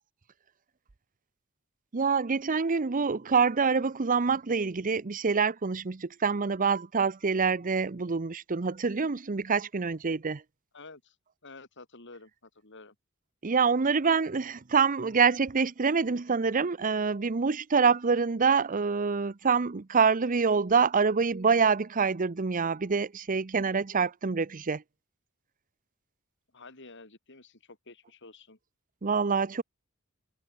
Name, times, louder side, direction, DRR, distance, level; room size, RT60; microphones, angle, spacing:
voice 1, 1.9-10.4 13.4-24.8 29.0-29.6, right 5 dB, 40° right, 0.7 m, -26 dB
voice 2, 10.7-11.2 11.4-12.9 26.5-28.6, left 3 dB, 60° left, 4.9 m, -50 dB
head